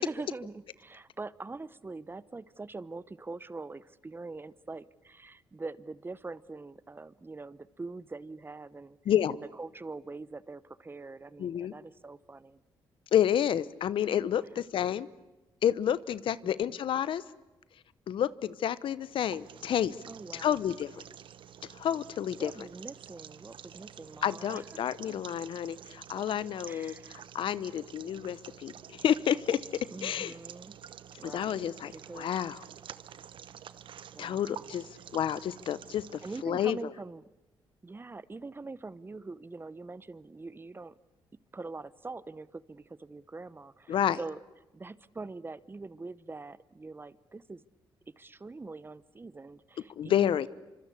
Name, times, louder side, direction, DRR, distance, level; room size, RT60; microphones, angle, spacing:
voice 1, 0.0-9.0 9.3-12.6 16.4-16.8 20.1-20.6 22.4-25.1 26.7-27.2 29.9-30.8 31.2-32.3 34.1-34.7 36.2-37.3 37.8-40.9 41.5-44.4 44.7-47.6 48.1-50.4, right 3 dB, 25° right, 18 dB, 0.9 m, -43 dB
voice 2, 9.1-9.4 11.4-11.7 13.1-15.1 15.6-17.2 18.1-20.0 20.3-21.0 21.7-22.5 24.2-30.3 31.2-32.6 34.2-36.9 43.9-44.2 50.0-50.5, left 10 dB, 70° left, 17 dB, 0.9 m, -30 dB
sound 1, 19.0-36.4, right 9 dB, 65° right, 1.1 m, -49 dB
26.0 x 25.0 x 8.5 m, 1.0 s
cardioid pair, 75°, 9 cm